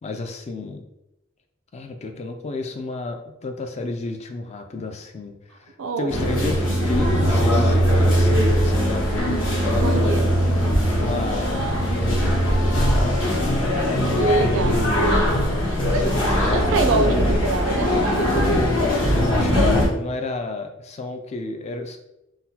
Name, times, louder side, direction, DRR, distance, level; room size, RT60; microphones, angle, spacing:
voice 1, 0.0-0.8 1.7-10.5 11.0-11.6 12.0-13.5 14.1-15.0 16.2-17.2 19.1-22.0, left 2 dB, 30° left, 6 dB, 0.3 m, -31 dB
voice 2, 5.8-6.1 9.8-10.6 14.2-14.9 15.6-16.1 16.5-18.1, right 3 dB, 70° right, 5 dB, 0.4 m, -25 dB
sound 1, 6.1-19.9, equal, 65° left, 1.4 m, -20 dB
3.8 x 2.2 x 2.7 m, 0.86 s
head